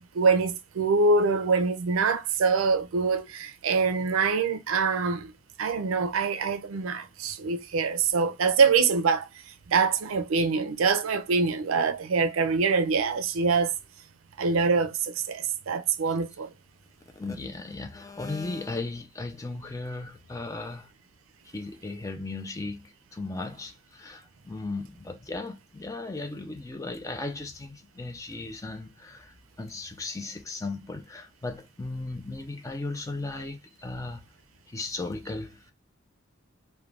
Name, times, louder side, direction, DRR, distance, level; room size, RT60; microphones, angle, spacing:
voice 1, 0.1-5.3 5.6-9.3 9.7-13.7 14.4-16.5, right 4 dB, 90° right, 0.4 m, -24 dB
voice 2, 17.2-20.9 21.5-34.2 34.7-35.7, left 3 dB, 15° left, 0.4 m, -36 dB
2.4 x 2.2 x 3.2 m
head